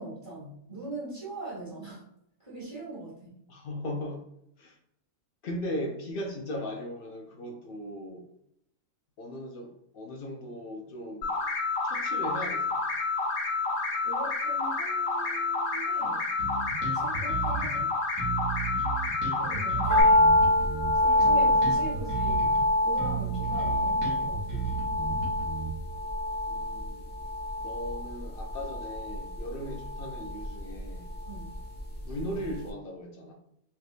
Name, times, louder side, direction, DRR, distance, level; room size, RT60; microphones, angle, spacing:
voice 1, 0.0-2.0 2.4-3.3 14.0-16.3 16.8-17.9 19.3-20.2 20.9-22.6 22.8-25.3 31.2-31.5, right 2 dB, 25° right, -8 dB, 1.3 m, -41 dB
voice 2, 3.5-4.2 4.6-4.8 5.4-8.2 9.2-11.3 11.8-12.8 26.5-27.1 27.6-31.1 32.0-33.3, equal, 70° left, 1 dB, 0.5 m, -38 dB
sound 1, 11.2-20.0, left 3 dB, 85° left, 1.2 m, -29 dB
Bass guitar, 16.4-17.8 18.2-22.6 23.0-26.0, right 5 dB, 80° right, 1.4 m, -34 dB
sound 2, 19.9-32.2 32.4-32.5, left 1 dB, 10° left, 0.5 m, -26 dB
3.3 x 2.7 x 2.4 m, 0.76 s
omnidirectional pair, 1.4 m